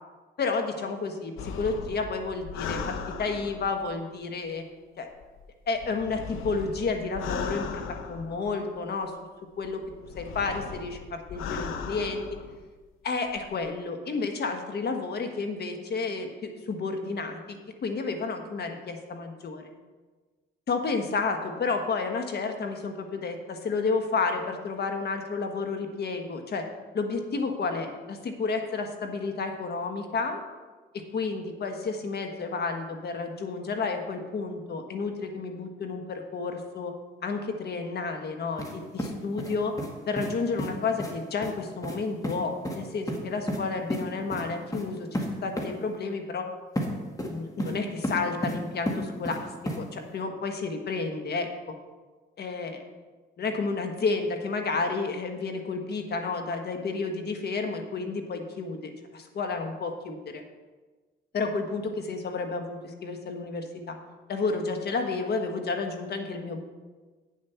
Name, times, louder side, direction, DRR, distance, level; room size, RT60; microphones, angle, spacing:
voice 1, 0.4-4.6 5.0-5.1 5.7-9.1 9.6-9.8 10.1-12.2 13.0-17.6 17.8-19.7 20.7-26.7 26.9-30.4 31.1-36.9 37.2-39.7 40.1-46.5 47.2-49.5 49.8-51.5 52.4-52.8 53.4-60.4 61.3-64.0 64.3-66.6, left 4 dB, 55° left, 5 dB, 1.4 m, -31 dB
sound 1, 1.4-3.9 5.1-8.8 9.6-12.6 13.3-13.6, left 5 dB, 90° left, 0.9 m, -37 dB
sound 2, 38.6-38.7 39.0-39.9 40.2-40.3 40.6-40.7 41.0-41.1 41.4-41.5 41.8-42.0 42.2-42.4 42.6-42.8 43.1-43.6 43.9-44.0 44.3-44.4 44.7-44.8 45.1-45.3 45.6-45.7 46.8-46.9 47.2-47.7 48.0-48.6 48.9-49.4 49.7-49.8, equal, 15° left, 1.8 m, -31 dB
8.7 x 7.6 x 5.7 m, 1.3 s
cardioid pair, 90°, 20 cm